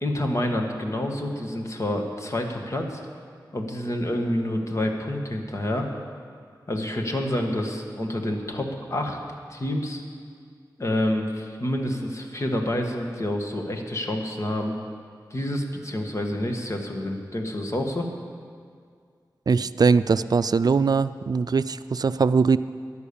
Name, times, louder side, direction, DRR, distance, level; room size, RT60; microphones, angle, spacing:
voice 1, 0.0-3.0 3.5-5.9 6.7-9.2 9.5-10.0 10.8-14.8 15.3-18.1, left 1 dB, 40° left, 3 dB, 1.8 m, -28 dB
voice 2, 19.5-22.6, right 5 dB, 60° right, 14 dB, 0.4 m, -21 dB
15.0 x 10.5 x 7.1 m, 2.1 s
wide cardioid pair, 80°, 8 cm